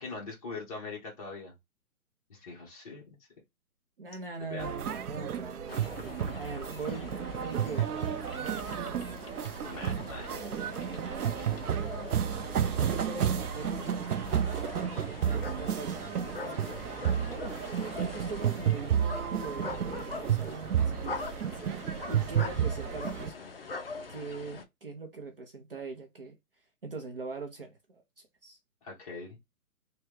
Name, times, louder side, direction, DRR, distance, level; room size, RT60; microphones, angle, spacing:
voice 1, 0.0-1.5 2.3-3.0 4.4-4.7 9.6-10.3 28.8-29.4, left 3 dB, 25° left, 1.1 m, -41 dB
voice 2, 4.0-7.9 8.4-9.1 12.9-13.9 15.3-16.2 17.3-17.6 18.0-21.3 22.1-23.3 24.1-26.4 26.8-28.0 28.4-28.6, right 3 dB, 40° right, 0.6 m, -41 dB
sound 1, 4.6-23.3, right 9 dB, 80° right, 0.6 m, -32 dB
sound 2, 5.7-24.6, left 4 dB, 40° left, 0.4 m, -43 dB
3.3 x 2.2 x 3.2 m
hypercardioid pair, 160°, 45 cm